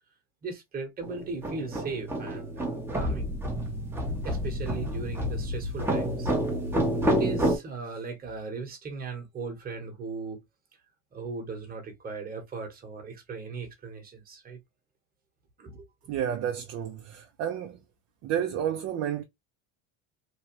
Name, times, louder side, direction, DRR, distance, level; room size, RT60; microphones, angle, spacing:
voice 1, 0.4-3.3 4.2-6.3 7.1-10.4 11.1-14.6 15.6-15.9, right 4 dB, 25° right, 1.2 m, -37 dB
sound 1, 1.0-7.6, equal, 5° right, 0.8 m, -29 dB
voice 2, 16.1-17.8 18.2-19.2, right 9 dB, 40° right, 0.6 m, -30 dB
3.1 x 2.3 x 2.9 m
cardioid pair, 140°, 38 cm